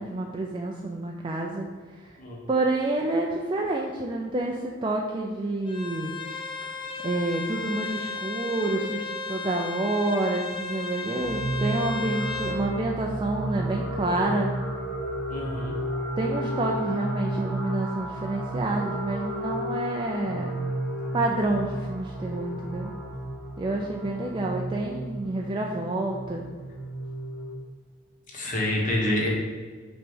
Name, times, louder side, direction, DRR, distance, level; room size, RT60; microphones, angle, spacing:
voice 1, 0.0-1.7 2.0-2.2 2.5-6.1 7.0-14.5 16.2-20.5 21.1-22.9 23.6-26.5, right 2 dB, 25° right, 0 dB, 0.4 m, -28 dB
Bowed string instrument, 5.7-12.6, left 4 dB, 25° left, 0.8 m, -34 dB
sound 1, 11.2-27.5, right 1 dB, 5° left, 1.2 m, -32 dB
voice 2, 15.3-15.8 28.3-29.3, left 1 dB, 45° left, -3 dB, 1.5 m, -27 dB
5.7 x 3.2 x 5.4 m, 1.5 s
head